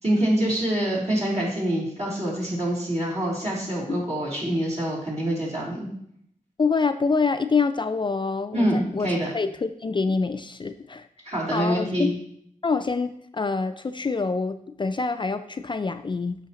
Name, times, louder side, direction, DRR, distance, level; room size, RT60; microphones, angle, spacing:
voice 1, 0.0-5.8 8.5-9.3 11.2-12.1, right 1 dB, 50° right, -5 dB, 3.0 m, -25 dB
voice 2, 6.6-11.1 11.5-12.1 12.6-16.4, left 4 dB, 35° left, 10 dB, 0.3 m, -26 dB
8.3 x 5.7 x 2.9 m, 0.70 s
wide cardioid pair, 75°, 14 cm